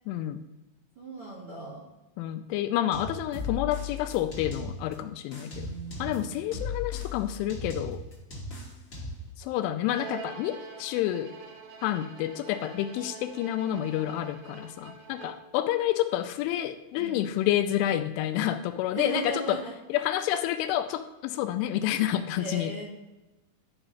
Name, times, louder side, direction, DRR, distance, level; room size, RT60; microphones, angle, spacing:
voice 1, 0.1-0.4 2.2-5.7 6.0-8.0 9.4-11.3 11.8-19.6 19.9-22.7, left 12 dB, 85° left, 10 dB, 2.9 m, -29 dB
voice 2, 1.0-1.9 5.3-6.5 17.0-17.2 18.9-19.7 22.4-22.8, right 2 dB, 40° right, -5 dB, 2.3 m, -37 dB
sound 1, 2.9-4.9 5.3-9.3, left 4 dB, 45° left, 1.1 m, -37 dB
Bowed string instrument, 9.9-15.6, right 6 dB, 75° right, 3.6 m, -45 dB
11.5 x 4.9 x 5.5 m, 1.1 s
omnidirectional pair, 5.6 m